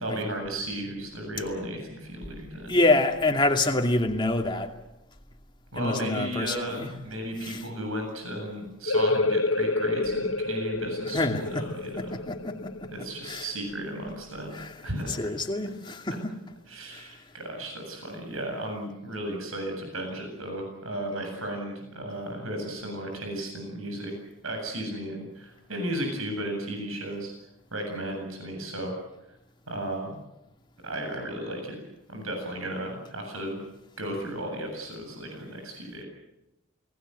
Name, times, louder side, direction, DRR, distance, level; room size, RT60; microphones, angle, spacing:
voice 1, 0.0-2.8 5.7-12.1 12.9-15.3 16.7-24.1 24.4-27.3 27.7-28.9 29.7-30.2 30.8-31.8 32.1-33.6 34.0-36.1, right 1 dB, 85° right, 3 dB, 7.8 m, -34 dB
voice 2, 2.7-4.7 5.8-6.9 7.4-7.6 11.1-11.6 12.0-12.9 13.2-13.5 14.5-14.7 15.1-16.3 16.9-17.1, left 2 dB, 25° left, 3 dB, 2.4 m, -26 dB
sound 1, 8.9-14.2, left 2 dB, 70° left, 1.1 m, -29 dB
29.5 x 19.5 x 8.1 m, 0.89 s
head